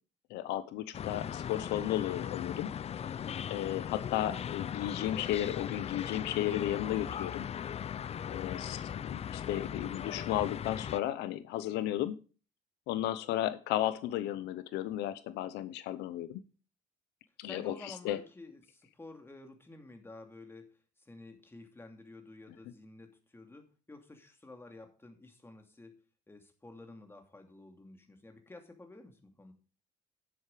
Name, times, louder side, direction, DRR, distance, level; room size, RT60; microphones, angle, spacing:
voice 1, 0.3-2.7 3.5-7.4 8.3-8.8 9.1-12.2 12.9-16.4 17.4-18.2, left 13 dB, 85° left, 13 dB, 0.8 m, -34 dB
sound 1, 0.9-11.0, left 9 dB, 40° left, 0.5 m, -38 dB
voice 2, 17.4-29.5, left 2 dB, 15° left, 4 dB, 2.6 m, -52 dB
10.0 x 7.8 x 5.0 m, 0.36 s
cardioid pair, 110°, 17 cm